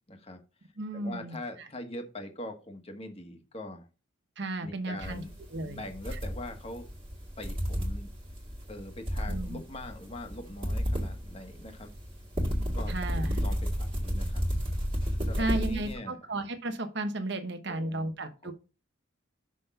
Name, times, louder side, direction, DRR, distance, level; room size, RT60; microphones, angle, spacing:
voice 1, 0.1-0.4 0.9-3.9 4.6-5.3 5.6-6.9 7.4-8.1 8.7-11.9 12.7-14.4 15.2-16.2 17.7-18.1 18.4-18.5, left 1 dB, 30° left, 5 dB, 1.5 m, -42 dB
voice 2, 0.8-1.7 4.4-5.2 5.5-5.8 9.3-9.6 12.9-13.4 15.4-18.5, right 2 dB, 60° right, 8 dB, 1.1 m, -34 dB
sound 1, 5.0-15.9, equal, 25° right, 1.9 m, -33 dB
6.3 x 5.6 x 5.6 m, 0.32 s
head